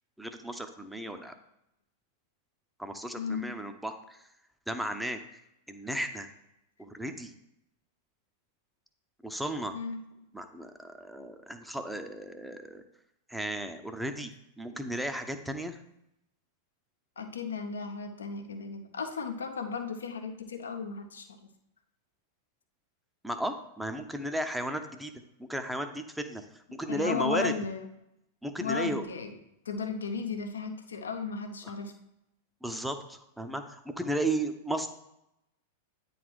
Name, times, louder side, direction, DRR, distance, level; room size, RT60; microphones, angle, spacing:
voice 1, 0.2-1.3 2.8-4.2 4.7-5.4 5.7-6.3 6.8-7.3 9.2-9.7 10.3-12.8 13.3-14.3 14.6-15.8 23.2-25.1 25.4-26.4 26.7-27.5 28.4-29.0 31.6-31.7 32.6-34.9, right 1 dB, 5° right, 7 dB, 0.8 m, -34 dB
voice 2, 3.2-3.5 9.7-10.0 17.2-21.5 26.9-27.9 28.6-29.4 29.6-31.9, left 5 dB, 75° left, 6 dB, 1.0 m, -35 dB
9.2 x 4.1 x 4.7 m, 0.84 s
figure-of-eight pair, 95°, 0 cm